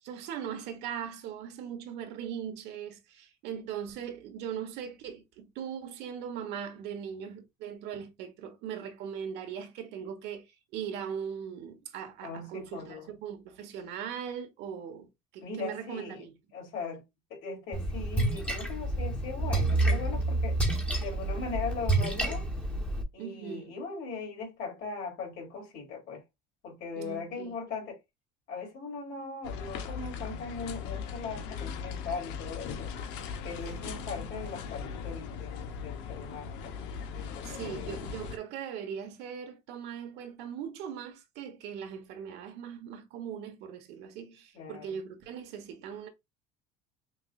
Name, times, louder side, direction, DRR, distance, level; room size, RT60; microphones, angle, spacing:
voice 1, 0.0-16.3 23.2-23.8 27.0-27.6 33.8-33.9 37.4-46.1, right 8 dB, 70° right, 1.2 m, -40 dB
voice 2, 12.2-13.1 15.4-16.2 16.5-17.0 17.3-20.6 21.0-22.5 23.1-26.2 26.6-28.0 28.5-32.9 33.4-36.7 37.1-38.0 44.5-45.0, left 4 dB, 65° left, 2.8 m, -39 dB
Splash splatter, 17.7-23.0, right 2 dB, 5° left, 1.1 m, -29 dB
sound 1, 29.4-38.4, left 6 dB, 80° left, 0.8 m, -39 dB
5.8 x 2.5 x 2.4 m
cardioid pair, 135°, 18 cm